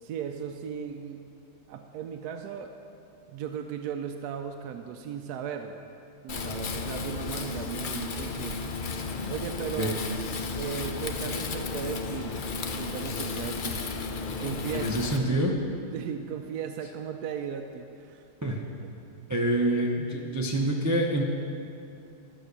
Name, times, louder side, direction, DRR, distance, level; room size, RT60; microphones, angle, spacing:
voice 1, 0.0-1.2 1.7-2.8 3.3-5.8 6.2-8.6 9.3-10.1 10.5-12.4 12.8-13.9 14.4-14.9 15.9-18.2 18.9-19.1, right 8 dB, 80° right, 5 dB, 1.1 m, -36 dB
Wind, 6.3-15.2, left 4 dB, 55° left, 0.5 m, -33 dB
voice 2, 14.7-15.6 18.4-18.6 19.3-21.2, right 1 dB, 20° right, -1 dB, 0.4 m, -26 dB
12.5 x 6.4 x 6.7 m, 2.6 s
omnidirectional pair, 1.7 m